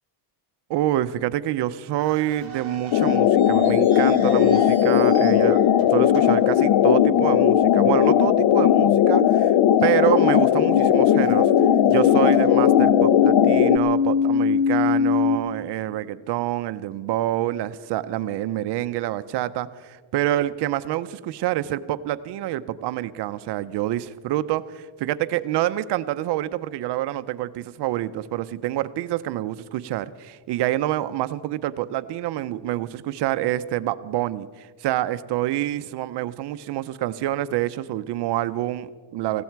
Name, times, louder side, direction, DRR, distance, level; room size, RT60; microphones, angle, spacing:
voice 1, 0.7-5.6 5.9-9.5 9.8-11.5 11.9-39.4, right 14 dB, 55° right, 13 dB, 0.7 m, -27 dB
sound 1, 2.0-7.3 7.6-7.7 8.4-8.6 9.1-9.2 9.8-10.4 10.7-13.2, right 4 dB, 30° right, 4.4 m, -45 dB
sound 2, 2.9-13.8, left 10 dB, 55° left, 0.8 m, -18 dB
sound 3, 9.6-15.4, left 5 dB, 85° left, 2.4 m, -23 dB
19.5 x 16.0 x 4.6 m, 1.5 s
cardioid pair, 140°, 49 cm